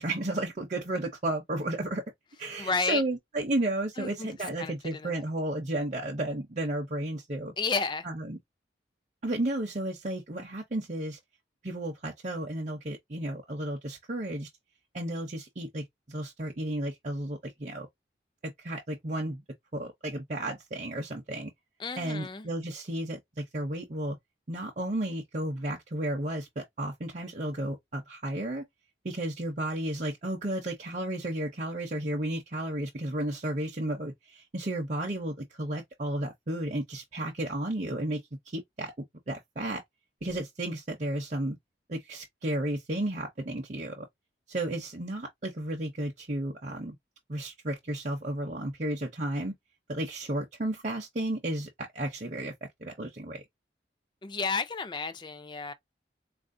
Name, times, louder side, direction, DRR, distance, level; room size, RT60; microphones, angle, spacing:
voice 1, 0.0-2.0 2.4-7.5 8.0-8.4 9.2-11.2 11.6-14.5 14.9-17.9 18.4-19.4 19.7-21.5 22.0-24.2 24.5-28.6 29.0-38.9 39.3-39.8 40.2-41.6 41.9-44.1 44.5-46.9 47.3-49.5 49.9-52.5 52.8-53.4, right 1 dB, 40° right, 0.6 m, -33 dB
voice 2, 2.6-3.0 4.0-4.3 4.6-5.2 7.6-8.1 21.8-22.5 54.2-55.7, left 4 dB, 25° left, 0.4 m, -32 dB
4.1 x 2.5 x 2.5 m
head